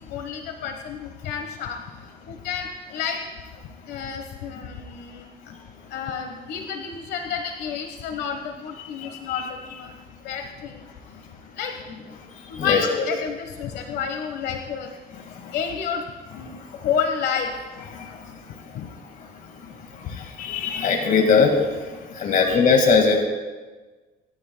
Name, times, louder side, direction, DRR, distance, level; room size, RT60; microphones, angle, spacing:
voice 1, 0.1-1.8 2.3-3.2 3.9-5.2 5.9-9.9 10.2-10.8 11.6-11.7 12.5-14.9 15.5-16.0 16.4-16.6 16.8-17.5 18.7-18.9 22.4-22.5, left 7 dB, 75° left, 4 dB, 1.3 m, -30 dB
voice 2, 12.6-13.0 15.4-15.5 17.9-18.1 20.4-21.5 22.2-23.2, left 5 dB, 50° left, 2 dB, 1.9 m, -19 dB
25.0 x 12.5 x 2.2 m, 1.3 s
cardioid pair, 110°, 17 cm